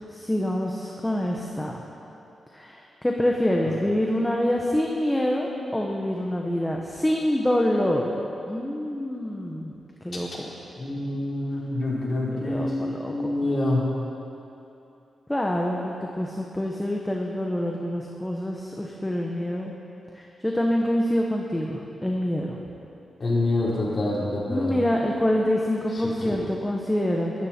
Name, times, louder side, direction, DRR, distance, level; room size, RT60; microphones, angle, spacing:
voice 1, 0.1-1.8 2.5-8.1 8.5-9.8 10.0-10.5 12.4-13.3 15.3-19.7 20.1-22.6 24.5-27.5, left 1 dB, 10° left, -1 dB, 1.1 m, -26 dB
voice 2, 10.8-12.8 13.1-13.8 23.2-24.7 25.9-26.4, left 2 dB, 40° left, -5 dB, 4.1 m, -26 dB
22.5 x 14.0 x 4.5 m, 2.9 s
wide cardioid pair, 155°, 0 cm